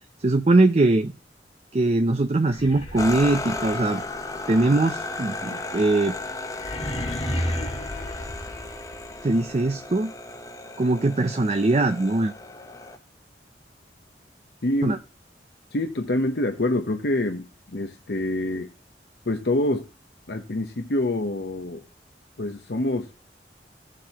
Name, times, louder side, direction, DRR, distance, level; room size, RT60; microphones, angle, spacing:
voice 1, 0.2-1.1 1.7-4.0 4.5-6.2 9.2-10.1 10.8-12.3 14.8-15.0, right 2 dB, 35° right, 0.5 m, -21 dB
sound 1, 2.4-9.3, equal, 35° left, 1.8 m, -34 dB
sound 2, 3.0-13.0, left 2 dB, 20° left, 0.7 m, -35 dB
voice 2, 14.6-15.0 15.7-18.7 19.3-19.8 20.3-21.8 22.4-23.1, left 1 dB, 70° left, 0.9 m, -26 dB
16.5 x 7.5 x 2.9 m
head